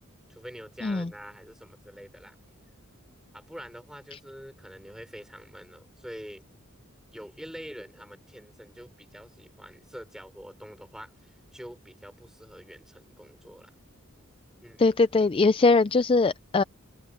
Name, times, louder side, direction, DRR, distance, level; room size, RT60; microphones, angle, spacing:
voice 1, 0.3-2.4 3.3-6.5 7.1-13.7 14.6-14.9, equal, 5° right, 5.1 m, -45 dB
voice 2, 14.8-16.6, left 3 dB, 25° left, 0.4 m, -21 dB
head